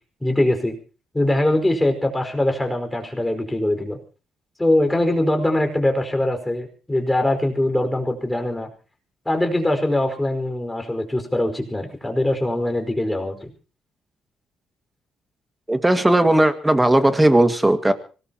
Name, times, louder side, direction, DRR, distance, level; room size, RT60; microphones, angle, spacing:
voice 1, 0.2-0.7 1.1-4.0 4.6-8.7 9.2-13.5, left 1 dB, 10° left, 4 dB, 5.0 m, -22 dB
voice 2, 15.7-17.9, right 1 dB, 10° right, 9 dB, 2.0 m, -17 dB
25.0 x 19.0 x 3.0 m, 0.36 s
cardioid pair, 90°, 0 cm